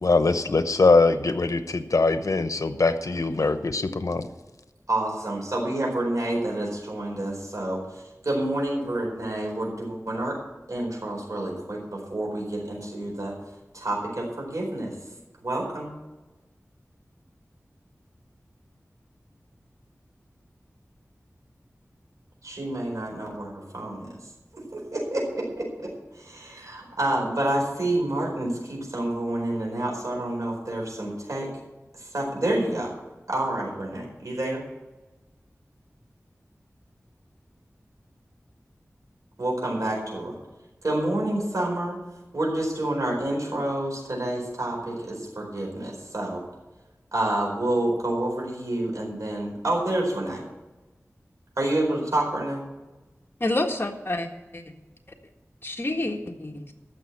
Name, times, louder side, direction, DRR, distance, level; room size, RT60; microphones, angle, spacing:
voice 1, 0.0-4.3, left 3 dB, 80° left, 10 dB, 0.9 m, -22 dB
voice 2, 4.9-10.3 10.7-13.3 13.7-14.9 15.4-15.9 22.4-24.1 24.5-25.9 26.1-31.5 31.9-32.9 33.3-34.6 39.4-40.3 40.8-42.0 42.3-46.4 47.1-50.4 51.6-52.6, right 1 dB, 75° right, -2 dB, 4.6 m, -28 dB
voice 3, 53.4-54.3 54.5-54.6 55.6-56.7, left 1 dB, 40° left, 2 dB, 1.7 m, -28 dB
14.5 x 6.4 x 8.5 m, 1.1 s
wide cardioid pair, 65°, 6 cm